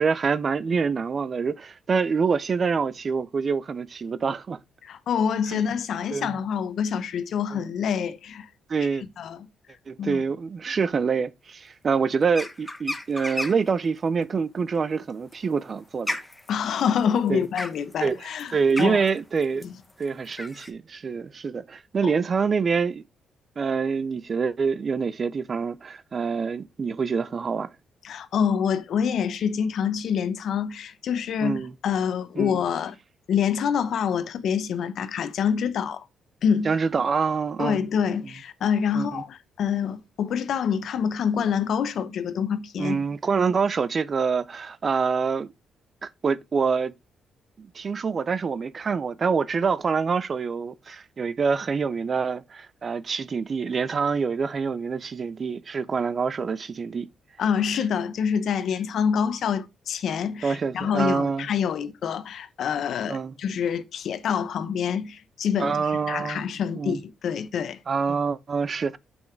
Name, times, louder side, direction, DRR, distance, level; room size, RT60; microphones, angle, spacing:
voice 1, 0.0-4.6 5.5-5.6 6.1-6.3 7.5-7.6 8.7-9.0 9.9-16.2 17.3-17.4 18.0-19.7 20.0-23.0 23.6-27.7 31.4-31.7 32.4-32.6 36.6-37.8 38.9-39.2 42.8-45.5 46.0-46.9 47.6-57.1 60.4-61.5 63.1-63.3 65.6-66.5 66.8-67.0 67.9-69.0, right 5 dB, 40° right, 0.5 m, -26 dB
voice 2, 4.8-8.5 9.2-9.5 10.0-10.2 16.5-18.5 18.8-19.0 19.6-19.7 22.0-22.1 28.0-33.0 33.3-36.0 36.4-36.7 37.6-43.0 57.4-67.8, left 7 dB, 65° left, 0.8 m, -26 dB
sound 1, 12.3-13.7 15.1-20.7, left 1 dB, 10° left, 0.9 m, -34 dB
5.6 x 5.5 x 4.4 m
cardioid pair, 90°, 0 cm